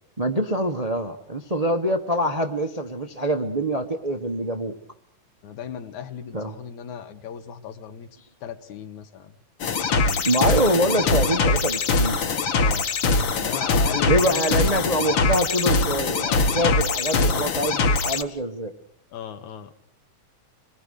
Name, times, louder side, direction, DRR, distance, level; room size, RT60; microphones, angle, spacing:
voice 1, 0.2-4.7 6.3-6.5 10.2-12.2 14.0-18.7, right 1 dB, 45° right, 5 dB, 0.4 m, -24 dB
voice 2, 5.4-8.1 8.4-9.4 9.9-10.3 12.6-12.9 13.3-14.9 16.6-16.8 19.1-19.7, left 9 dB, 80° left, 8 dB, 2.8 m, -36 dB
sound 1, 9.6-18.2, left 3 dB, 50° left, 1.8 m, -22 dB
27.0 x 21.0 x 6.6 m, 0.67 s
omnidirectional pair, 3.4 m